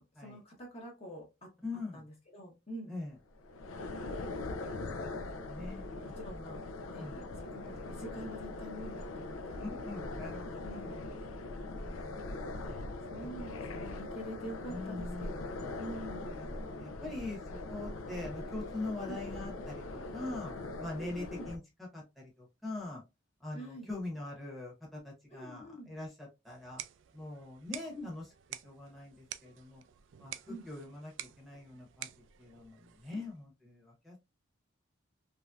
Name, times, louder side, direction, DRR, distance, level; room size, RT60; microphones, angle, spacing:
voice 1, 0.0-1.5 1.9-2.9 4.9-5.1 6.0-6.6 6.9-7.1 7.4-9.6 10.6-11.0 13.1-16.3 19.1-19.2 21.0-21.5 23.5-23.9 25.3-25.9 27.9-28.1 30.5-30.7, right 1 dB, 30° left, 0.8 m, -46 dB
voice 2, 1.6-2.0 2.9-3.1 4.6-4.9 5.3-6.1 7.0-7.2 7.6-7.7 9.6-11.1 11.5-12.8 13.5-13.7 14.7-15.4 16.1-20.5 20.8-23.0 23.4-26.8 27.1-28.3 28.6-29.8 30.2-32.1 32.4-34.2, left 2 dB, ahead, 0.9 m, -43 dB
sound 1, 3.3-21.6, left 2 dB, 85° left, 0.5 m, -41 dB
sound 2, 26.5-33.4, right 12 dB, 60° right, 0.3 m, -49 dB
3.1 x 2.6 x 2.3 m
head